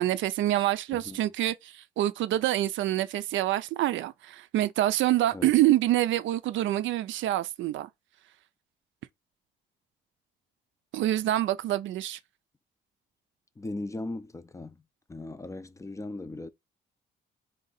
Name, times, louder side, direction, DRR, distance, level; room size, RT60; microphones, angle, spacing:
voice 1, 0.0-7.9 10.9-12.2, right 14 dB, 75° right, 0.4 m, -26 dB
voice 2, 0.9-1.2 5.3-5.5 13.6-14.8 15.1-16.5, left 2 dB, 15° left, 0.4 m, -38 dB
3.6 x 2.6 x 4.0 m
cardioid pair, 90°, 20 cm